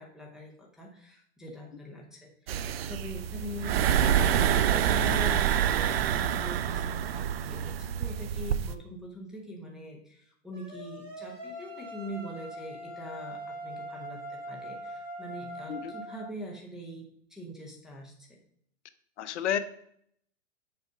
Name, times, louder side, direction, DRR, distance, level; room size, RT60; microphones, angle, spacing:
voice 1, 0.0-4.4 4.7-18.4, equal, ahead, -4 dB, 0.7 m, -43 dB
sound 1, 2.5-8.7, right 9 dB, 50° right, 0.5 m, -27 dB
sound 2, 10.5-16.3, equal, 30° right, 2.9 m, -42 dB
voice 2, 19.2-19.6, left 9 dB, 60° left, 12 dB, 0.8 m, -30 dB
6.8 x 4.9 x 4.9 m, 0.67 s
hypercardioid pair, 155°, 39 cm